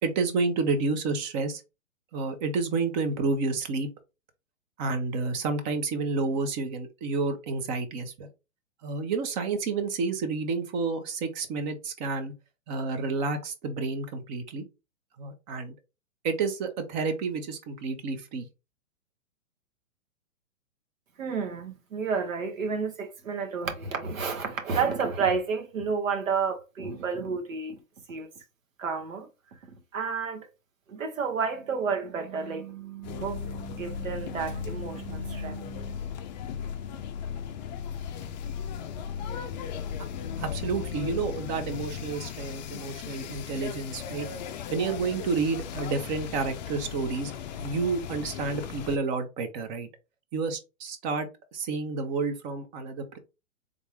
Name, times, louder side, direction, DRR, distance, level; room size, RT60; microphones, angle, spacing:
voice 1, 0.0-1.6 2.1-3.9 4.8-8.3 8.8-12.3 12.7-14.6 15.2-15.7 16.2-18.5 40.4-44.3 44.7-47.3 47.6-49.9 50.3-53.2, right 4 dB, 35° right, 0.8 m, -30 dB
voice 2, 21.2-27.8 28.1-28.3 28.8-29.3 29.9-30.5 30.9-36.0, right 5 dB, 75° right, 1.3 m, -31 dB
sound 1, 33.0-49.0, left 8 dB, 35° left, 0.4 m, -37 dB
3.6 x 2.6 x 3.4 m
hypercardioid pair, 120°, 40 cm